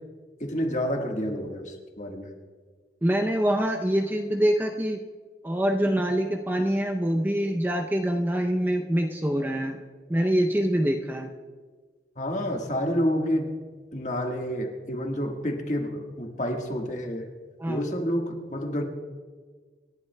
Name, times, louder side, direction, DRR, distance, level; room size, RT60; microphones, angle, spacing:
voice 1, 0.4-2.3 12.2-13.5 13.9-17.3 17.7-18.8, equal, 40° left, 2 dB, 1.5 m, -29 dB
voice 2, 3.0-5.0 5.4-9.8 10.1-11.3 17.6-17.8, equal, 10° right, 3 dB, 0.5 m, -25 dB
27.0 x 11.0 x 2.2 m, 1.5 s
head